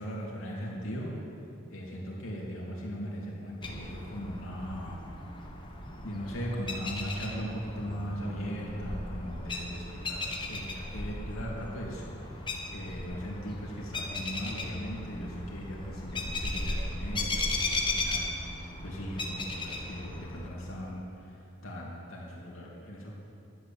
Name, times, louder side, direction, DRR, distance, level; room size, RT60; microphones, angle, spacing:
voice 1, 0.0-5.0 6.0-23.1, equal, 75° left, -4 dB, 2.7 m, -39 dB
sound 1, 3.6-20.5, left 2 dB, 25° left, 1.3 m, -36 dB
11.5 x 8.1 x 8.8 m, 2.7 s
head